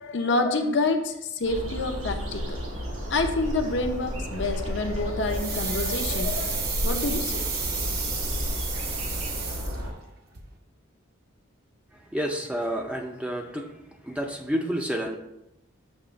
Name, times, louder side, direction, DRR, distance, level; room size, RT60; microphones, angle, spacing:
voice 1, 0.0-2.6 3.1-7.5, left 3 dB, 55° left, 5 dB, 0.6 m, -28 dB
sound 1, 1.4-9.9, equal, 85° right, 1.6 m, -32 dB
sound 2, 5.3-10.1 10.3-10.4, right 5 dB, 50° right, 0.9 m, -32 dB
voice 2, 11.9-13.7 14.0-15.2, equal, 5° right, 2 dB, 0.5 m, -30 dB
7.1 x 3.0 x 5.0 m, 0.84 s
head